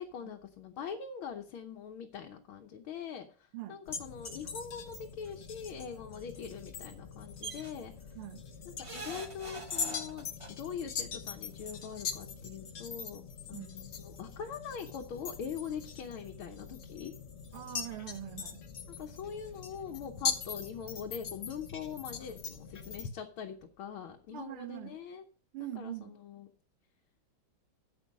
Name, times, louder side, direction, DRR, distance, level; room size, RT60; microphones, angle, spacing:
voice 1, 0.0-7.9 8.7-13.2 13.5-17.1 18.9-25.2 25.7-26.5, left 7 dB, 70° left, 1.8 m, -43 dB
sound 1, 3.9-23.0, left 6 dB, 50° left, 0.8 m, -42 dB
sound 2, 7.4-7.7 8.8-10.5 11.7-11.8 12.1-12.2, right 3 dB, 20° right, 0.8 m, -43 dB
voice 2, 17.5-18.6 24.3-25.0 25.5-26.1, right 13 dB, 80° right, 2.0 m, -42 dB
10.0 x 7.9 x 5.2 m
omnidirectional pair, 2.4 m